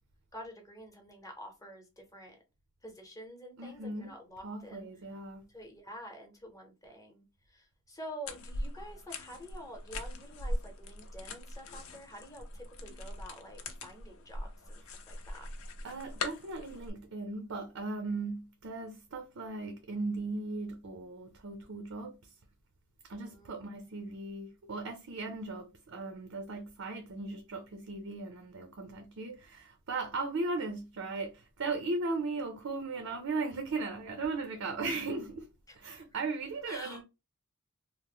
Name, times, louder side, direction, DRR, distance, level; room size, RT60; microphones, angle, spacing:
voice 1, 0.3-2.4 2.8-4.9 5.5-15.5 23.2-23.6 35.7-35.8 36.7-37.0, equal, 15° left, 0.8 m, -48 dB
voice 2, 3.6-5.5 15.8-22.2 23.0-35.5 35.8-37.0, right 3 dB, 65° right, 0.6 m, -37 dB
sound 1, 8.3-16.9, left 2 dB, 75° left, 0.6 m, -41 dB
2.9 x 2.1 x 3.5 m
head